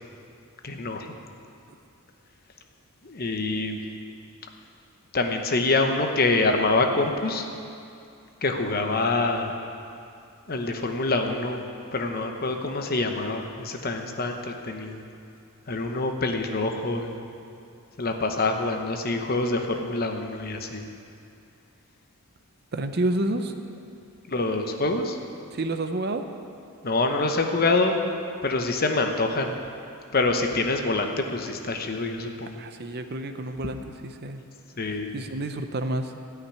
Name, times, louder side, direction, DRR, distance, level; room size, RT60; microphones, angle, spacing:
voice 1, 0.6-1.1 3.0-3.8 5.1-7.5 8.4-9.5 10.5-11.6 11.9-15.0 15.7-17.1 18.0-20.8 24.3-25.2 26.8-28.0 28.4-29.6 30.1-32.6 34.8-35.1, left 2 dB, 45° left, 4 dB, 0.9 m, -26 dB
voice 2, 22.7-23.5 25.5-26.2 32.6-34.4 35.1-36.1, right 2 dB, 45° right, 8 dB, 0.6 m, -29 dB
13.5 x 5.9 x 9.6 m, 2.5 s
head